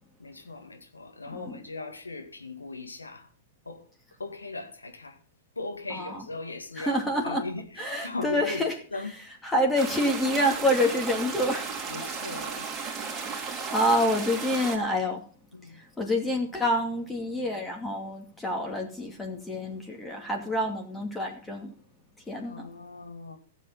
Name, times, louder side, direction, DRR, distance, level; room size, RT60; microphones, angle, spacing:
voice 1, 0.2-3.3 3.6-3.9 4.2-5.2 5.6-8.6 8.9-9.2 11.9-12.8 15.5-15.8 22.4-23.4, left 3 dB, 85° left, 2.0 m, -38 dB
voice 2, 5.9-6.2 6.8-7.4 7.8-8.7 9.4-11.8 13.2-15.2 15.7-21.7 22.3-22.7, left 1 dB, 10° left, 2.5 m, -27 dB
sound 1, 9.8-14.8, right 5 dB, 20° right, 3.1 m, -35 dB
16.0 x 7.6 x 5.6 m
figure-of-eight pair, 100°, 0 cm